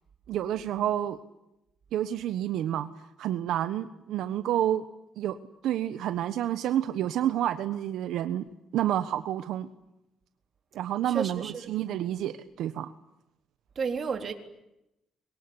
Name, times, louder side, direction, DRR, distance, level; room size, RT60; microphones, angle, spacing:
voice 1, 0.3-1.2 1.9-2.9 3.2-4.8 5.2-5.4 5.6-8.4 8.7-9.7 10.7-12.9, right 11 dB, 80° right, 1.2 m, -29 dB
voice 2, 11.1-11.7 13.8-14.3, right 5 dB, 45° right, 3.8 m, -31 dB
25.5 x 23.0 x 9.8 m
cardioid pair, 90°, 0 cm